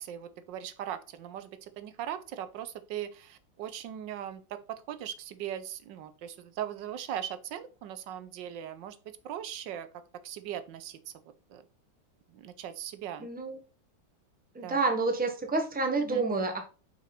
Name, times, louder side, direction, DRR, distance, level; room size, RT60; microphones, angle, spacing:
voice 1, 0.0-9.0 9.2-9.9 10.2-11.1 11.5-11.6 12.3-13.3 14.6-14.8 16.0-16.2, right 10 dB, 80° right, 12 dB, 1.4 m, -39 dB
voice 2, 13.2-13.6 14.5-16.7, right 3 dB, 5° right, 4 dB, 1.0 m, -29 dB
5.9 x 5.6 x 4.3 m, 0.34 s
omnidirectional pair, 2.0 m